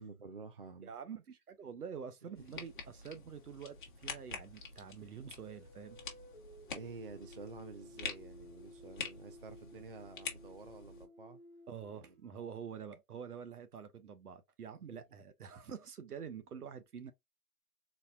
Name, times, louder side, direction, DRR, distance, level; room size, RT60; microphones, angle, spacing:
voice 1, 0.0-0.9 2.6-2.7 6.7-11.4 11.9-12.1 14.9-15.0, right 3 dB, 40° right, 0.4 m, -50 dB
voice 2, 0.8-6.0 11.7-17.1, right 7 dB, 75° right, 0.9 m, -47 dB
sound 1, 2.3-11.1, left 5 dB, 35° left, 1.1 m, -47 dB
sound 2, 5.4-12.8, equal, 10° right, 1.0 m, -57 dB
4.1 x 2.3 x 2.6 m
hypercardioid pair, 155°, 45 cm